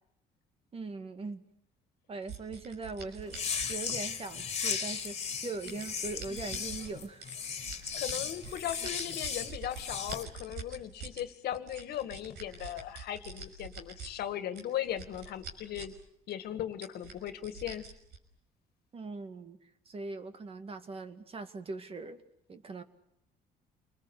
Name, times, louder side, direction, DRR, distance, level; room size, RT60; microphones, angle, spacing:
voice 1, 0.7-1.4 2.1-3.4 3.7-7.3 7.7-8.0 18.9-19.6 19.9-22.2 22.5-22.8, right 3 dB, 35° right, 9 dB, 2.3 m, -41 dB
sound 1, 2.3-4.4 5.1-6.9 7.2-11.2 11.5-14.1 14.5-16.0 16.3-16.4 16.8-18.2, right 4 dB, 80° right, 5.8 m, -45 dB
sound 2, 3.3-10.2, left 6 dB, 35° left, 2.6 m, -36 dB
voice 2, 8.0-15.9 16.3-17.8, left 11 dB, 70° left, 11 dB, 2.0 m, -38 dB
29.0 x 20.5 x 8.3 m, 0.76 s
cardioid pair, 110°, 17 cm